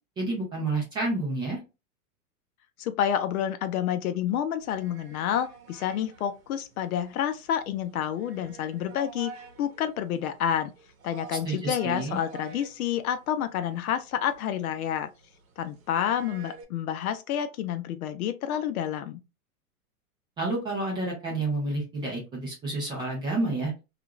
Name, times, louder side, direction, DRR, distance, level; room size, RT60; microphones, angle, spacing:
voice 1, 0.2-1.6 11.4-12.2 20.4-23.7, right 2 dB, 10° right, 0.4 m, -29 dB
voice 2, 2.8-9.3 9.6-10.7 11.0-15.1 15.6-19.2, left 9 dB, 70° left, 0.6 m, -29 dB
sound 1, 4.6-16.6, right 5 dB, 60° right, 0.9 m, -49 dB
2.4 x 2.3 x 2.9 m
hypercardioid pair, 145°, 45 cm